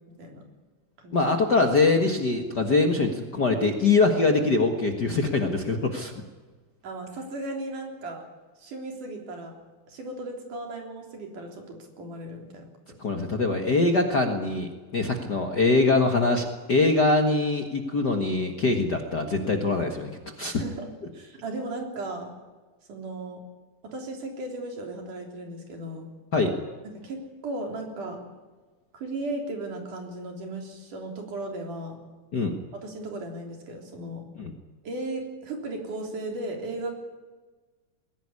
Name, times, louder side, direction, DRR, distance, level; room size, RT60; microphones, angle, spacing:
voice 1, 1.1-6.2 13.0-20.1 20.4-20.5 26.3-26.5 32.3-32.5 34.4-34.5, left 3 dB, 40° left, 3 dB, 1.6 m, -23 dB
voice 2, 6.8-8.3 8.6-9.6 9.9-13.0 20.6-22.3 22.9-23.4 23.8-26.1 26.8-28.2 28.9-32.0 32.7-34.3 34.8-37.0, right 2 dB, 70° right, 2 dB, 5.0 m, -36 dB
21.5 x 16.5 x 9.8 m, 1.3 s
omnidirectional pair, 3.8 m